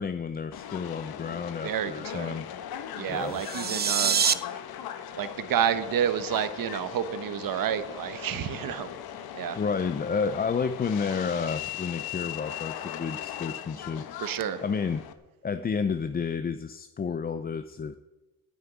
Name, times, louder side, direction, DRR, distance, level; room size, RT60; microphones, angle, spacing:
voice 1, 0.0-2.5 3.1-3.4 9.5-14.1 14.6-15.0 15.4-18.0, left 5 dB, 25° left, 10 dB, 0.5 m, -31 dB
Subway metro underground, 0.5-15.1, left 10 dB, 85° left, 1.1 m, -39 dB
voice 2, 1.6-2.4 2.9-4.2 5.2-8.9 9.3-9.6 14.2-14.6, right 9 dB, 65° right, 12 dB, 1.2 m, -29 dB
sound 1, 3.3-4.3, right 7 dB, 25° right, 0.5 m, -25 dB
9.5 x 9.5 x 9.2 m, 1.1 s
cardioid pair, 125°, 36 cm